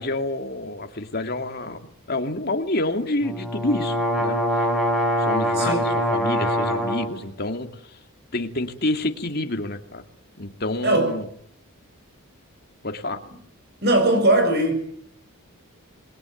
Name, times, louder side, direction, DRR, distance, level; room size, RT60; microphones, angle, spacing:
voice 1, 0.0-1.8 2.1-4.4 5.2-8.0 8.3-10.0 10.4-11.3 12.8-13.2, left 2 dB, 45° left, 2.6 m, -28 dB
sound 1, 3.2-7.1, equal, ahead, 5.2 m, -23 dB
voice 2, 5.6-5.9 10.8-11.1 13.8-14.8, right 1 dB, 45° right, 7.1 m, -19 dB
28.0 x 22.0 x 9.4 m
head